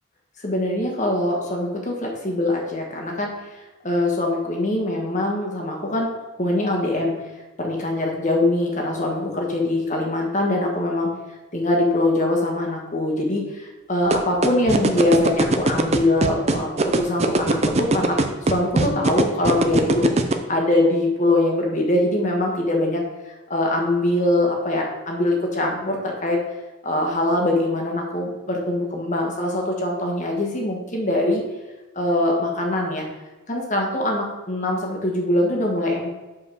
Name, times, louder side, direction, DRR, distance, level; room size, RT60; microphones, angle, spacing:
voice 1, 0.4-3.3 3.8-6.1 6.4-7.2 7.6-11.1 11.5-20.0 20.5-23.0 23.5-26.4 26.8-31.4 31.9-33.1 33.5-36.2, left 1 dB, 35° left, 0 dB, 1.4 m, -23 dB
sound 1, 14.1-20.3, right 2 dB, 30° right, 0.5 m, -19 dB
5.3 x 4.7 x 6.2 m, 1.2 s
head